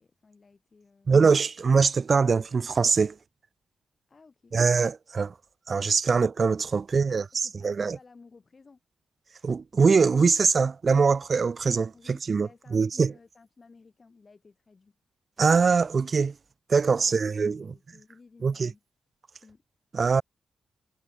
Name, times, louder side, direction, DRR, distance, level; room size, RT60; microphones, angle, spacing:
voice 1, 0.0-1.2 4.1-4.6 6.7-8.8 11.9-15.0 16.9-18.8 19.4-19.6, left 4 dB, 35° left, 5.9 m, -56 dB
voice 2, 1.1-3.1 4.5-5.3 5.7-7.2 7.6-8.0 9.4-12.5 12.7-13.1 15.4-16.3 16.7-17.6 18.4-18.7 19.9-20.2, right 5 dB, 40° right, 0.3 m, -22 dB
wide cardioid pair, 115°, 0 cm